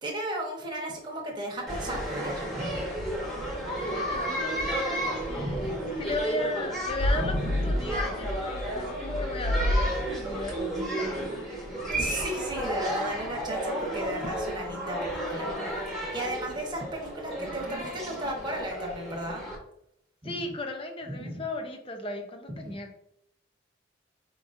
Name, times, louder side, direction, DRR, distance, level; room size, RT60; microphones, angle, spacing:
voice 1, 0.0-2.8 5.4-5.8 7.1-7.8 12.0-15.5 16.1-19.5 20.2-20.3 21.1-21.4 22.6-22.7, right 1 dB, 20° right, -2 dB, 1.1 m, -34 dB
sound 1, 1.7-19.6, right 1 dB, ahead, 1.1 m, -33 dB
voice 2, 3.6-5.7 6.0-11.6 20.2-23.0, left 1 dB, 25° left, 4 dB, 0.6 m, -36 dB
sound 2, 6.9-10.4, left 1 dB, 85° left, 0.7 m, -29 dB
4.8 x 3.8 x 2.6 m, 0.76 s
head